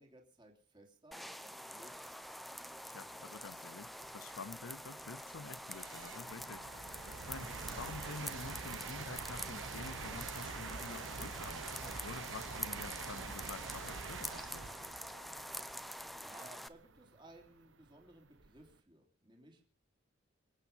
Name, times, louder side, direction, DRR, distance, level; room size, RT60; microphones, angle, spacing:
voice 1, 0.0-2.1 16.2-19.7, right 1 dB, 25° right, 3.3 m, -59 dB
sound 1, 1.1-16.7, equal, ahead, 0.7 m, -46 dB
voice 2, 2.8-6.6 7.3-14.7, left 4 dB, 85° left, 0.7 m, -49 dB
sound 2, 3.3-3.4 4.0-18.7, right 5 dB, 65° right, 0.9 m, -47 dB
26.0 x 8.9 x 5.5 m
head